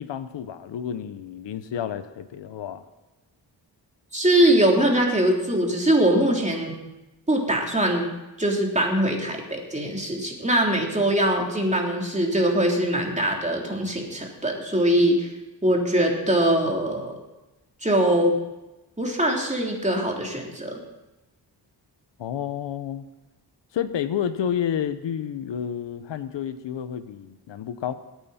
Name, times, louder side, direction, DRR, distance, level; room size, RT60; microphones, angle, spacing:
voice 1, 0.0-2.8 22.2-23.0 23.7-27.9, left 9 dB, 85° left, 12 dB, 0.9 m, -30 dB
voice 2, 4.1-6.7 7.3-8.1 8.4-15.3 15.6-17.2 17.8-18.4 19.0-20.8, right 1 dB, 15° right, 0 dB, 3.4 m, -22 dB
22.0 x 9.1 x 4.3 m, 1.0 s
cardioid pair, 75°, 42 cm